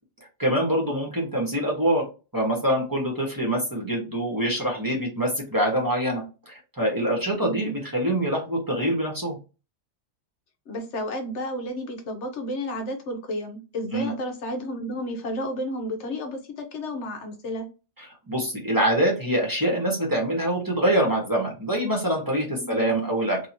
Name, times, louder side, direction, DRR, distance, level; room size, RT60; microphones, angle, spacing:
voice 1, 0.4-2.1 2.3-9.4 13.9-14.1 18.3-23.4, right 1 dB, 20° right, -1 dB, 1.1 m, -25 dB
voice 2, 7.4-7.7 10.7-17.7 22.6-22.9, equal, 90° left, 4 dB, 1.2 m, -32 dB
3.0 x 2.8 x 2.8 m, 0.31 s
omnidirectional pair, 1.2 m